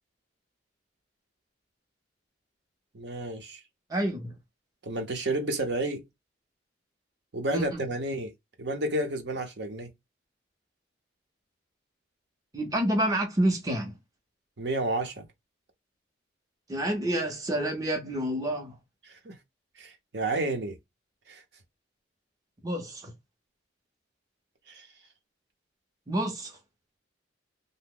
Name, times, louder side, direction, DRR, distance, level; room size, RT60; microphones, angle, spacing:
voice 1, 2.9-3.6 4.8-6.0 7.3-8.3 8.6-9.9 14.6-15.3 19.1-19.4 19.8-20.8 21.3-21.4 24.7-24.9, right 2 dB, 65° right, 0.7 m, -31 dB
voice 2, 3.9-4.3 7.5-7.8 12.5-14.0 16.7-18.8 22.6-23.1 26.1-26.6, right 1 dB, 20° right, 0.6 m, -28 dB
2.8 x 2.1 x 3.6 m
head